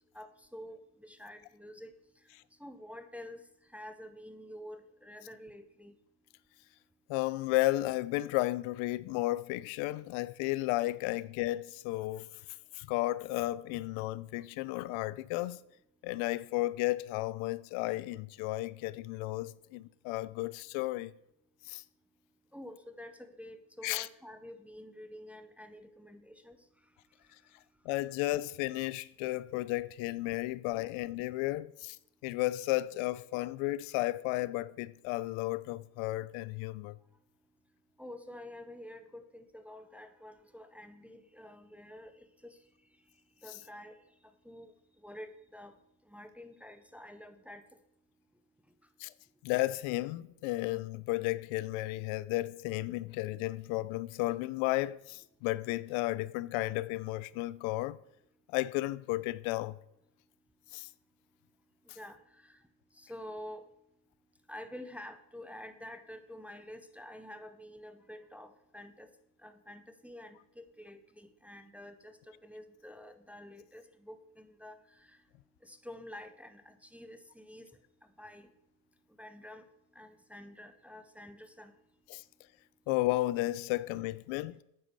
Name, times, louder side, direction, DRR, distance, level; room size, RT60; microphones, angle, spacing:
voice 1, 0.1-1.9 2.6-3.4 3.7-5.9 22.5-26.6 38.0-42.6 43.4-44.0 44.4-44.7 45.0-45.8 46.1-47.6 62.0-62.6 62.9-63.6 64.5-69.1 69.4-75.2 75.6-77.7 78.2-78.5 79.2-79.6 80.0-81.7, left 1 dB, 5° right, 0.5 m, -48 dB
voice 2, 7.1-12.3 12.7-15.6 16.0-21.1 21.7-21.8 23.8-24.1 27.8-32.0 32.2-37.0 49.0-49.1 49.4-58.0 58.5-59.8 60.7-60.9 82.1-82.2 82.9-84.6, left 18 dB, 85° left, 0.6 m, -33 dB
9.3 x 8.3 x 6.5 m
cardioid pair, 155°, 47 cm